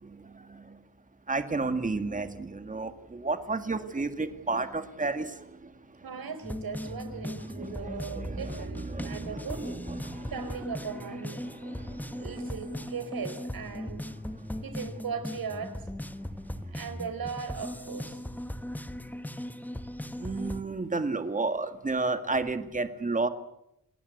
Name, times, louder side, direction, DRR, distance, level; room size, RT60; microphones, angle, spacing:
voice 1, 0.0-0.8 1.3-5.7 7.4-10.3 11.4-12.3 20.2-23.3, right 3 dB, 25° right, 9 dB, 1.9 m, -32 dB
voice 2, 6.0-9.7 10.3-11.4 12.2-14.1 14.6-15.9 16.7-18.2, right 6 dB, 85° right, 10 dB, 4.6 m, -38 dB
sound 1, 6.4-20.6, left 1 dB, 5° left, 1.1 m, -38 dB
29.0 x 19.5 x 8.2 m, 0.80 s
wide cardioid pair, 175°, 34 cm